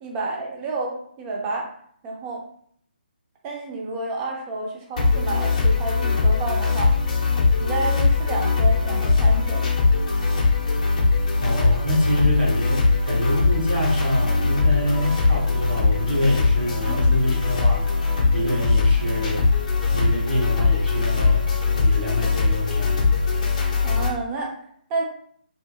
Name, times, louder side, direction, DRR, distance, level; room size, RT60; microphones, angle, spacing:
voice 1, 0.0-1.7 2.0-2.4 3.4-6.9 7.6-9.6 16.9-17.2 23.8-24.5 24.9-25.0, right 3 dB, 20° right, -1 dB, 0.5 m, -30 dB
sound 1, 5.0-24.1, left 4 dB, 45° left, 0.5 m, -21 dB
voice 2, 11.4-19.4 19.9-21.4 21.8-23.1, left 1 dB, 70° right, -3 dB, 1.0 m, -26 dB
2.7 x 2.6 x 2.3 m, 0.63 s
figure-of-eight pair, 140°, 5 cm